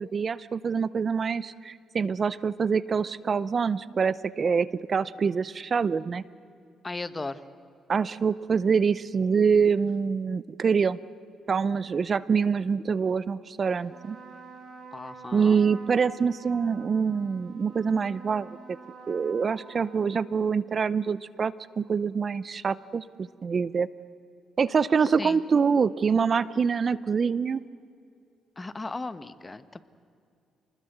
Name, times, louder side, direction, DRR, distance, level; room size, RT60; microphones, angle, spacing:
voice 1, 0.0-6.2 7.9-11.0 11.5-14.2 15.3-18.8 19.1-23.9 24.6-27.6, right 6 dB, 40° right, 18 dB, 0.6 m, -25 dB
voice 2, 6.8-7.4 14.9-15.6 25.0-25.4 28.6-29.8, left 3 dB, 20° left, 13 dB, 1.1 m, -36 dB
Trumpet, 13.8-20.7, right 4 dB, 60° right, 5.8 m, -48 dB
28.0 x 20.5 x 8.0 m, 2.5 s
cardioid pair, 90°, 0 cm